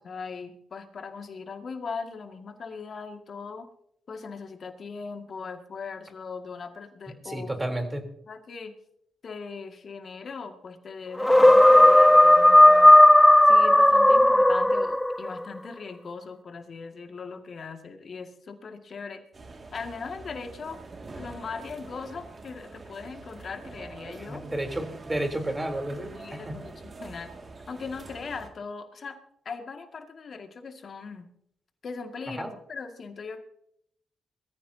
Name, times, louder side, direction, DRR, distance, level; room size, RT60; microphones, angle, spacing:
voice 1, 0.0-3.7 4.1-7.7 8.3-8.8 9.2-13.0 13.4-19.2 19.7-20.8 21.2-24.4 26.1-27.3 27.7-29.2 29.5-31.3 31.8-33.4, left 5 dB, 60° left, 5 dB, 2.1 m, -39 dB
voice 2, 7.2-8.0 24.1-26.5 32.4-32.5, right 1 dB, 20° right, 4 dB, 3.5 m, -32 dB
sound 1, 11.2-15.3, left 1 dB, 10° left, 0.4 m, -15 dB
sound 2, 19.3-28.5, right 3 dB, 45° right, 2.2 m, -45 dB
22.0 x 14.5 x 2.8 m, 0.72 s
supercardioid pair, 45°, 0 cm